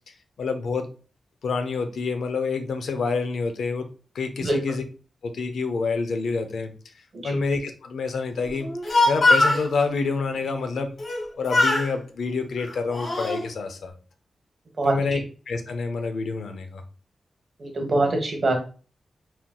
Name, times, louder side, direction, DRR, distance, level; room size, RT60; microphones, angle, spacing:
voice 1, 0.4-0.9 1.4-3.8 4.1-4.8 5.2-6.7 7.2-8.7 9.0-10.9 11.4-13.9 14.8-15.2 15.5-16.8, left 4 dB, 90° left, 7 dB, 0.5 m, -27 dB
Speech, 8.6-9.6 11.0-11.2 11.5-11.9 12.6-13.4, left 2 dB, 65° left, 1.5 m, -21 dB
voice 2, 17.6-18.6, right 2 dB, 45° right, 3 dB, 1.2 m, -24 dB
4.3 x 3.7 x 2.3 m, 0.38 s
wide cardioid pair, 110°, 0 cm